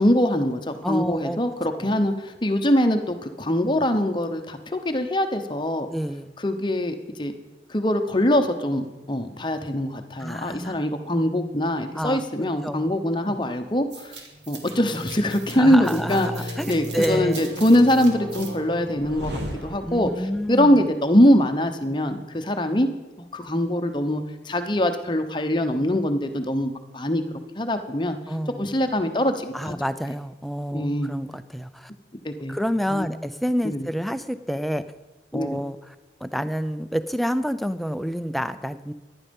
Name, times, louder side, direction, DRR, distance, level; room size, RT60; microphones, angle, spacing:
voice 1, 0.0-5.9 6.4-7.3 7.7-14.1 14.5-22.9 23.2-27.2 27.6-28.2 28.6-29.7 30.7-31.1 32.2-32.6 32.9-33.1 33.6-33.9 35.3-35.6, left 1 dB, 25° left, 7 dB, 0.9 m, -23 dB
voice 2, 0.8-1.4 1.7-2.0 5.9-6.3 10.2-10.8 11.9-12.3 12.6-12.9 13.2-13.4 15.5-17.6 19.8-20.9 28.3-28.7 29.5-31.9 32.5-34.8 35.3-36.0 36.2-38.9, equal, ahead, 11 dB, 0.4 m, -28 dB
sound 1, 13.9-20.3, equal, 90° right, 2.3 m, -35 dB
15.0 x 11.0 x 5.3 m, 1.1 s
head